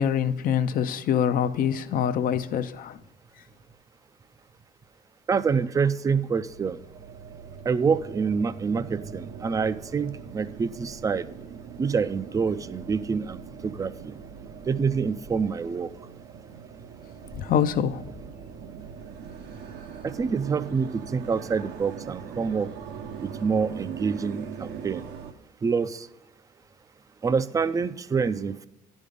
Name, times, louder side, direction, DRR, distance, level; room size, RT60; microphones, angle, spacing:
voice 1, 0.0-3.0 17.3-18.1, left 8 dB, 55° left, 0.5 m, -25 dB
voice 2, 5.3-6.8 7.7-11.2 11.8-14.1 14.7-15.9 20.0-22.7 23.2-25.0 25.6-26.1 27.2-28.7, right 5 dB, 20° right, 0.4 m, -26 dB
sound 1, 6.4-25.3, right 7 dB, 75° right, 0.8 m, -41 dB
10.5 x 5.3 x 5.0 m
cardioid pair, 110°, 17 cm